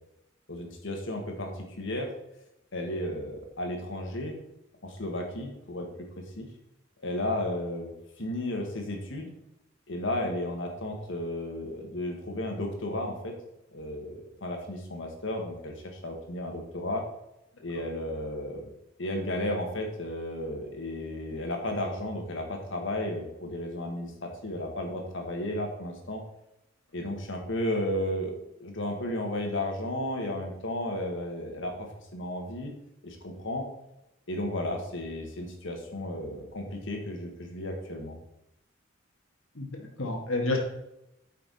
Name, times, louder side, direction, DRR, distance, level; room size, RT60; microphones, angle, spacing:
voice 1, 0.5-2.1 2.7-4.4 4.8-6.5 7.0-9.3 9.9-13.4 13.7-17.0 17.6-18.6 19.0-26.2 26.9-28.4 28.6-32.7 33.0-33.7 34.3-38.1, left 1 dB, 70° left, 2 dB, 1.8 m, -33 dB
voice 2, 39.6-40.6, left 2 dB, 85° left, 1 dB, 1.9 m, -30 dB
8.8 x 5.7 x 4.2 m, 0.86 s
head